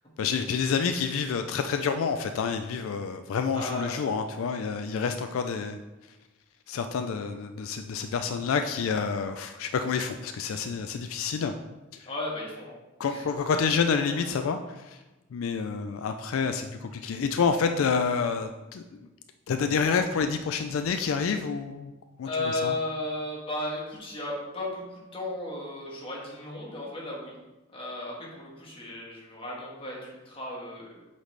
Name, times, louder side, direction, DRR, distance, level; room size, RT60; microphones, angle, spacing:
voice 1, 0.2-5.8 6.7-11.5 11.9-12.1 13.0-15.0 15.3-19.1 19.5-21.9 22.2-22.7, left 5 dB, 75° left, 7 dB, 0.4 m, -28 dB
voice 2, 3.5-4.0 12.1-12.7 13.0-13.2 14.1-14.4 22.2-27.3 27.7-30.9, left 2 dB, 25° left, -3 dB, 1.6 m, -35 dB
8.0 x 4.1 x 3.3 m, 1.1 s
head